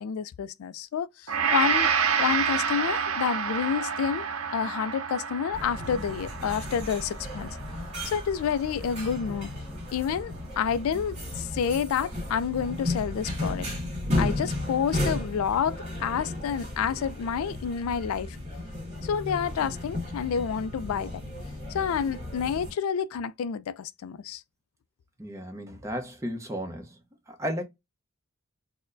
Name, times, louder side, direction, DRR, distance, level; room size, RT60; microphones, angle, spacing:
voice 1, 0.0-1.9 2.2-4.3 4.5-7.5 8.0-9.5 9.9-13.7 14.2-18.4 19.0-21.2 21.7-24.4, left 7 dB, 75° left, 0.3 m, -29 dB
Gong, 1.3-9.6 10.0-10.2, right 6 dB, 85° right, 0.6 m, -29 dB
sound 1, 5.5-22.7, left 1 dB, 30° right, 1.9 m, -34 dB
voice 2, 25.2-27.0 27.3-27.6, equal, 15° right, 0.8 m, -34 dB
4.2 x 2.1 x 2.5 m
head